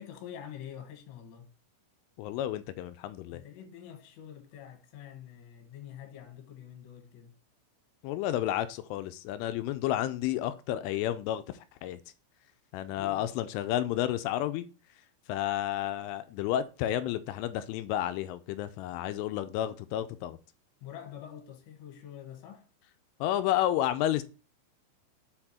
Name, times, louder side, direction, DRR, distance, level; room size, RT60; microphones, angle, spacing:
voice 1, 0.0-1.5 3.3-7.3 13.0-13.3 20.8-22.7, left 9 dB, 65° left, 3.4 m, -46 dB
voice 2, 2.2-3.4 8.0-11.4 11.8-12.0 12.7-14.7 15.3-20.4 23.2-24.2, left 12 dB, 80° left, 3.0 m, -31 dB
7.9 x 4.4 x 4.3 m
omnidirectional pair, 5.9 m